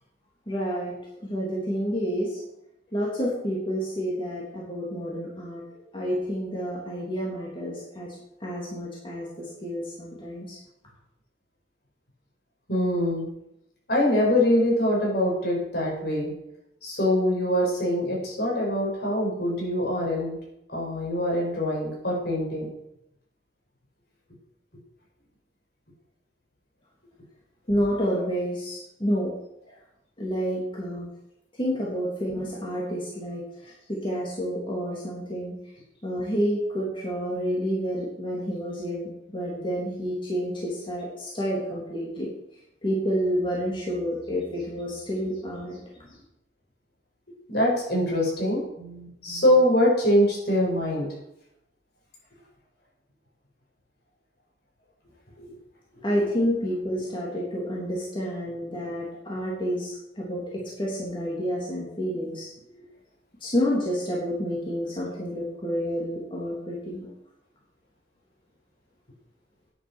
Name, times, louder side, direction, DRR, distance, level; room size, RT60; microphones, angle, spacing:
voice 1, 0.5-0.9 1.2-2.4 2.9-5.6 5.9-8.1 8.4-10.6 27.7-29.3 30.2-31.1 31.6-35.6 36.0-42.3 42.8-45.8 46.1-46.2 56.0-62.5 63.4-67.1, equal, 30° left, -5 dB, 3.2 m, -29 dB
voice 2, 12.7-13.3 13.9-16.3 16.8-20.4 20.7-22.7 47.5-51.1 55.4-55.5 56.0-56.1 62.8-62.9, left 1 dB, 65° left, -3 dB, 5.7 m, -24 dB
10.0 x 9.7 x 6.4 m, 0.83 s
head